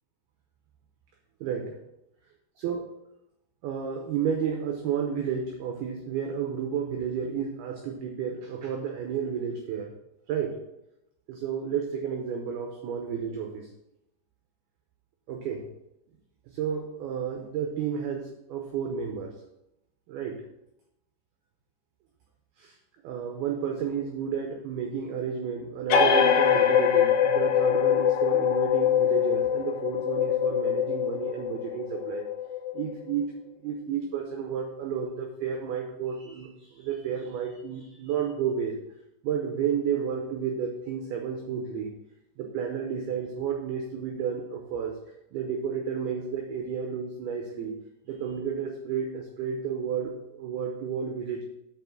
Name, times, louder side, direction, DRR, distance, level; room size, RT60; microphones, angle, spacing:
voice 1, 1.4-1.8 2.6-2.8 3.6-9.9 10.3-10.6 11.3-13.7 15.3-15.7 16.5-19.4 20.1-20.5 22.6-22.8 23.0-32.3 32.7-33.3 33.6-38.8 39.2-41.9 42.4-44.9 45.3-47.8 48.1-51.4, right 7 dB, 80° right, 2 dB, 2.2 m, -31 dB
sound 1, 25.9-33.1, left 8 dB, 80° left, 3.0 m, -23 dB
7.0 x 5.8 x 6.0 m, 0.86 s
omnidirectional pair, 5.5 m